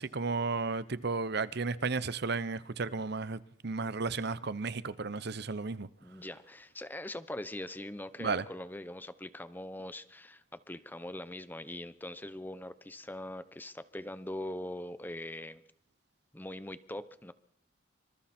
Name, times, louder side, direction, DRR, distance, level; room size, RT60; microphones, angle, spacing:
voice 1, 0.0-5.9 8.2-8.4, right 4 dB, 60° right, 0.9 m, -33 dB
voice 2, 6.0-15.6 16.3-17.3, left 1 dB, 10° left, 0.9 m, -42 dB
26.5 x 26.0 x 4.4 m
head